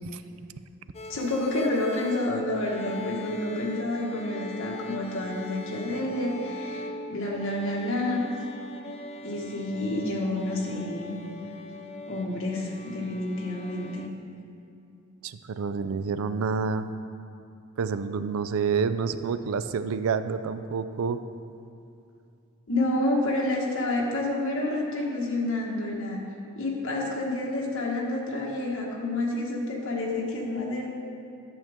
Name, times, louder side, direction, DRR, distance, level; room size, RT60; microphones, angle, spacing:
sound 1, 0.9-14.1, left 1 dB, 30° left, 0.4 m, -40 dB
voice 1, 1.1-8.2 9.2-11.2 12.1-14.1 22.7-26.2 26.5-30.9, left 1 dB, 65° left, -3 dB, 1.6 m, -29 dB
voice 2, 15.2-16.9 17.8-21.2, right 5 dB, 70° right, 11 dB, 0.4 m, -28 dB
11.5 x 7.2 x 3.6 m, 2.6 s
head